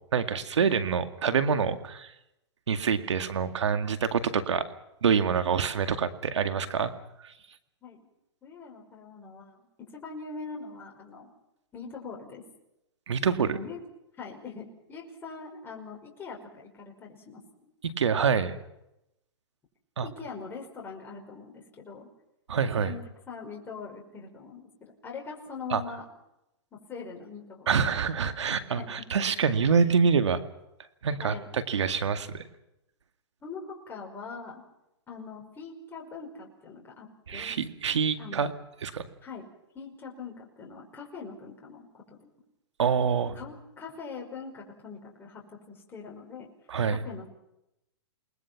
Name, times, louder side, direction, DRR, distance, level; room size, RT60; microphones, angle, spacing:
voice 1, 0.1-2.1 2.7-4.7 5.0-6.9 13.1-13.6 17.8-18.6 20.0-20.1 22.5-22.9 25.7-25.8 27.7-30.4 31.0-32.4 37.3-38.5 38.8-39.1 42.8-43.4 46.7-47.0, right 6 dB, 85° right, 9 dB, 2.1 m, -26 dB
voice 2, 8.4-11.3 11.7-12.4 13.4-13.8 14.2-17.4 20.0-22.1 22.6-23.0 23.3-26.1 26.7-27.7 28.8-28.9 31.2-31.5 33.4-34.6 35.1-37.6 38.2-38.5 39.2-39.4 39.7-42.3 43.3-46.5 46.9-47.3, left 5 dB, 15° left, -1 dB, 5.2 m, -42 dB
29.0 x 20.0 x 6.0 m, 0.87 s
hypercardioid pair, 140°, 15 cm